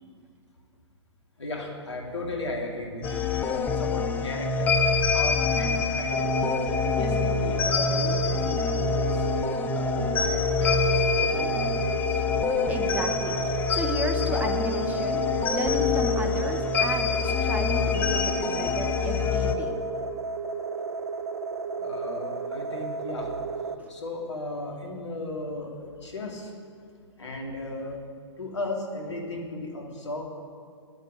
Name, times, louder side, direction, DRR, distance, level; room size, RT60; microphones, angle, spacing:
voice 1, 1.4-9.3 9.7-12.2 21.8-23.3 23.9-26.5 27.2-28.0 28.4-30.2, left 2 dB, 70° left, 0 dB, 2.9 m, -36 dB
sound 1, 3.0-19.6, left 5 dB, 10° left, 0.6 m, -26 dB
sound 2, 6.1-23.8, right 4 dB, 65° right, 0.7 m, -33 dB
voice 2, 12.7-15.2 15.5-19.7 23.8-23.9, right 2 dB, 10° right, 6 dB, 1.1 m, -33 dB
9.1 x 8.9 x 9.8 m, 2.2 s
figure-of-eight pair, 115°, 15 cm